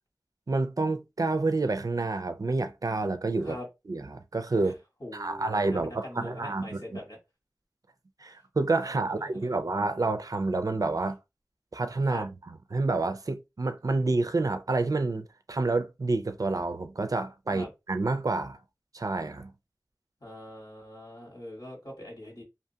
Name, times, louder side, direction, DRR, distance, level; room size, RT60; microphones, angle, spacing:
voice 1, 0.5-3.6 3.9-4.8 5.1-7.0 8.2-11.2 11.7-18.6 18.9-19.5, right 3 dB, 60° right, 0.4 m, -29 dB
voice 2, 5.0-7.2 12.1-12.3 17.5-17.7 20.2-22.4, left 1 dB, 80° left, 1.6 m, -42 dB
2.7 x 2.2 x 2.7 m
wide cardioid pair, 45°, 7 cm